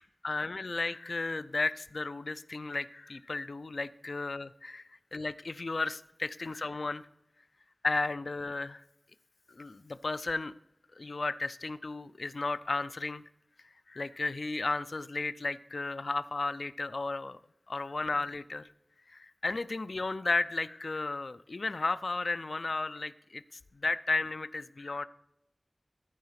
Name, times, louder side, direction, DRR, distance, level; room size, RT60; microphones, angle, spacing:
voice 1, 0.0-4.8 5.1-7.0 7.8-8.8 9.5-10.5 10.9-13.2 13.9-17.4 17.7-18.6 19.1-23.4 23.7-25.1, left 3 dB, 70° left, 14 dB, 0.4 m, -34 dB
14.0 x 4.7 x 5.7 m, 0.83 s
wide cardioid pair, 60°, 0 cm